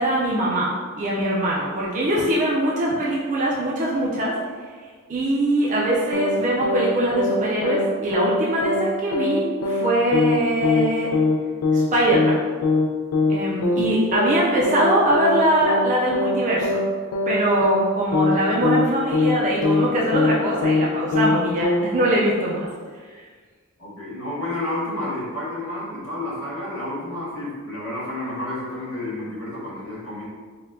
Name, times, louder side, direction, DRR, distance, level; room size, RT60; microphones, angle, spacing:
voice 1, 0.0-4.3 5.1-11.1 11.7-12.4 13.3-16.8 17.3-22.7, right 1 dB, 35° right, -5 dB, 0.4 m, -22 dB
sound 1, 6.1-6.4 6.6-6.9 7.1-7.4 7.6-7.9 8.1-8.4 8.6-8.9 9.1-9.4 9.6-9.9 10.1-10.4 10.6-10.9 11.1-11.4 11.6-11.9 12.1-12.4 12.6-12.9 13.1-13.4 13.6-13.9 14.1-14.4 14.6-14.9 15.1-15.4 15.6-15.9 16.1-16.4 16.6-16.9 17.1-17.4 17.6-17.9 18.1-18.4 18.6-18.9 19.1-19.4 19.6-19.9 20.1-20.4 20.6-20.9 21.1-21.4 21.6-21.9, left 3 dB, 85° left, 0.5 m, -21 dB
voice 2, 23.8-30.2, left 1 dB, 60° left, -7 dB, 1.2 m, -30 dB
4.1 x 2.2 x 2.6 m, 1.6 s
head